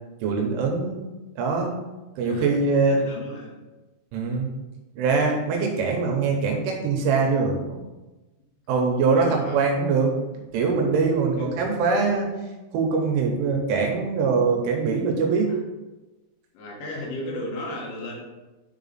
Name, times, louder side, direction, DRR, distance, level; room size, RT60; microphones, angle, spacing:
voice 1, 0.2-1.7 2.2-3.0 4.1-4.5 5.0-7.8 8.7-12.3 12.7-15.5, right 4 dB, 80° right, 1 dB, 3.4 m, -23 dB
voice 2, 2.8-3.6 8.7-8.9 9.1-9.6 11.4-11.5 15.2-15.6 16.5-18.2, left 1 dB, 85° left, -2 dB, 4.2 m, -35 dB
10.0 x 4.2 x 4.1 m, 1.1 s
omnidirectional pair, 5.6 m